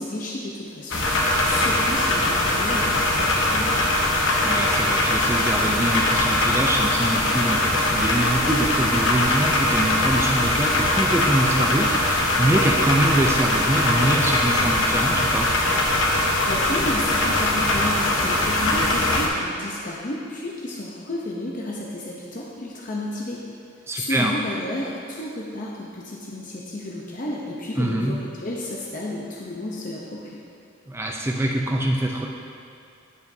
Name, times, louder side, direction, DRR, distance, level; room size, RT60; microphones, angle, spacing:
voice 1, 0.0-3.9 16.5-23.4 23.9-30.4, left 1 dB, 40° left, -3 dB, 0.6 m, -32 dB
sound 1, 0.9-19.3, left 1 dB, 70° left, 1.0 m, -21 dB
voice 2, 4.4-15.5 23.9-24.3 27.8-28.2 30.9-32.3, right 1 dB, 10° right, 0 dB, 0.4 m, -24 dB
14.5 x 5.0 x 2.7 m, 2.4 s
head